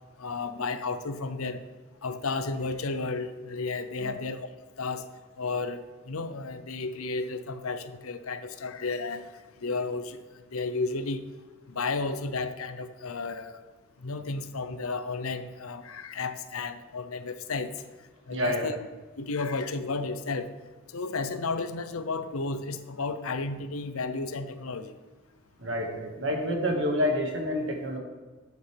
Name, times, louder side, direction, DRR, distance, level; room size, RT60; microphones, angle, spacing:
voice 1, 0.2-1.6 2.0-4.5 4.8-5.0 5.4-9.3 9.6-10.2 10.5-11.2 11.7-13.6 14.0-17.7 18.3-18.8 19.2-20.5 20.9-24.9, left 3 dB, 85° left, 10 dB, 0.7 m, -32 dB
voice 2, 18.3-18.7 25.6-28.0, left 1 dB, 60° right, 1 dB, 1.8 m, -28 dB
12.0 x 8.0 x 3.4 m, 1.3 s
head